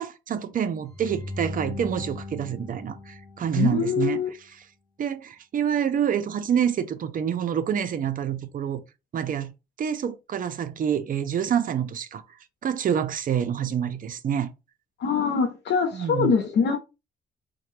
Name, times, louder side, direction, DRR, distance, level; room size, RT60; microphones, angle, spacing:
voice 1, 0.0-4.2 5.0-8.8 9.1-9.5 9.8-12.2 12.6-14.5 15.9-16.3, right 8 dB, 50° right, 0.5 m, -27 dB
sound 1, 0.9-4.1, left 2 dB, 10° left, 1.2 m, -38 dB
voice 2, 3.6-4.3 15.0-16.8, left 6 dB, 70° left, 0.6 m, -23 dB
3.8 x 2.2 x 3.0 m
cardioid pair, 90°, 19 cm